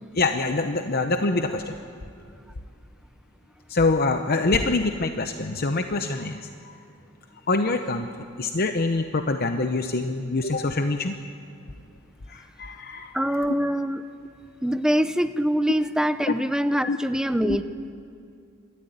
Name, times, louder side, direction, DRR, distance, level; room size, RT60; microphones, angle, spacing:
voice 1, 0.2-1.8 3.7-6.8 7.5-8.1 8.4-11.1 12.3-13.1 13.6-13.7 16.8-17.0 17.4-17.6, left 3 dB, 50° left, 7 dB, 0.8 m, -25 dB
voice 2, 13.1-14.0 14.6-17.6, equal, 5° right, 10 dB, 0.6 m, -24 dB
25.5 x 13.5 x 9.5 m, 2.4 s
head